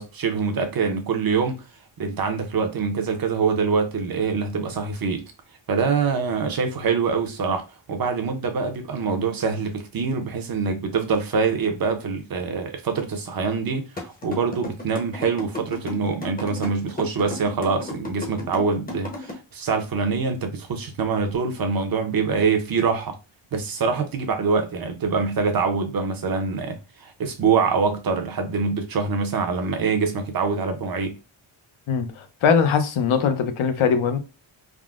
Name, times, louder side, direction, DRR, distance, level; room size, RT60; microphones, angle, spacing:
voice 1, 0.0-1.6 2.0-5.2 5.7-7.6 7.9-23.2 23.5-31.1, right 5 dB, 45° right, 0.6 m, -24 dB
sound 1, 14.0-19.3, left 2 dB, 20° left, 0.6 m, -33 dB
voice 2, 31.9-34.2, left 6 dB, 75° left, 0.7 m, -21 dB
3.6 x 2.0 x 2.3 m
wide cardioid pair, 145°, 50 cm